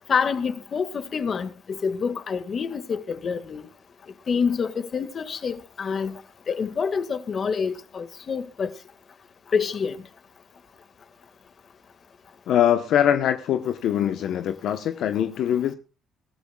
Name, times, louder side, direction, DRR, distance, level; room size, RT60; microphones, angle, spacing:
voice 1, 0.1-3.6 4.3-6.2 6.5-8.7 9.5-10.0, left 6 dB, 40° left, 1.8 m, -27 dB
voice 2, 12.5-15.7, left 10 dB, 70° left, 1.0 m, -23 dB
23.0 x 13.5 x 2.3 m
cardioid pair, 100°, 0 cm